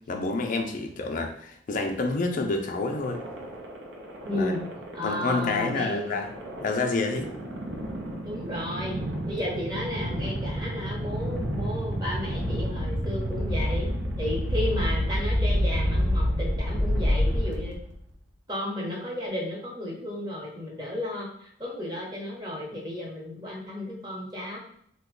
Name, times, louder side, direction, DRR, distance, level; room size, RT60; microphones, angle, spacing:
voice 1, 0.1-3.2 4.3-4.5 5.0-6.3 6.6-7.3, left 3 dB, 45° left, 3 dB, 0.4 m, -28 dB
sound 1, 2.9-18.0, equal, 70° right, 0.7 m, -29 dB
voice 2, 4.2-4.6 4.9-6.2 8.2-13.9 14.2-17.8 18.5-24.6, left 1 dB, 25° right, -3 dB, 1.0 m, -33 dB
3.0 x 2.2 x 3.7 m, 0.65 s
head